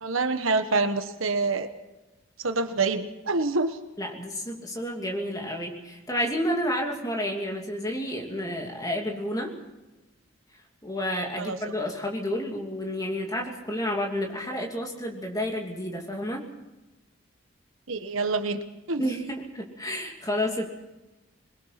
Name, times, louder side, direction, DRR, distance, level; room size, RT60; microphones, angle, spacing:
voice 1, 0.0-1.7 2.4-3.8 11.4-11.6 17.9-18.6 18.9-19.0, right 3 dB, 75° right, 9 dB, 1.2 m, -26 dB
voice 2, 4.0-9.5 10.8-16.5 19.0-20.6, equal, 15° left, 1 dB, 2.8 m, -30 dB
22.0 x 21.5 x 5.9 m, 1.0 s
head